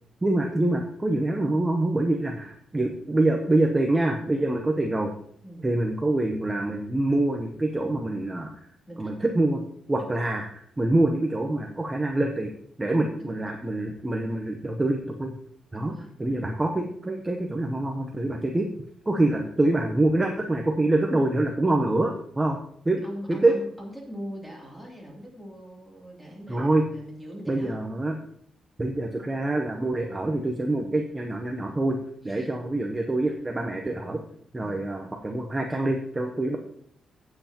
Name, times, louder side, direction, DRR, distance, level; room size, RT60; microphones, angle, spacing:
voice 1, 0.2-5.1 5.6-8.5 9.0-9.6 9.9-12.5 12.8-15.3 15.7-15.9 16.2-18.7 19.1-22.6 22.8-23.0 23.3-23.5 26.5-26.8 27.5-28.2 28.8-32.0 32.2-34.2 34.5-36.6, right 2 dB, 15° right, 1 dB, 0.8 m, -25 dB
voice 2, 8.9-9.2 10.0-10.2 13.2-13.7 15.7-16.2 23.0-27.8 32.3-32.5, equal, 5° left, -3 dB, 2.8 m, -41 dB
15.5 x 7.9 x 2.9 m, 0.65 s
wide cardioid pair, 165°, 0 cm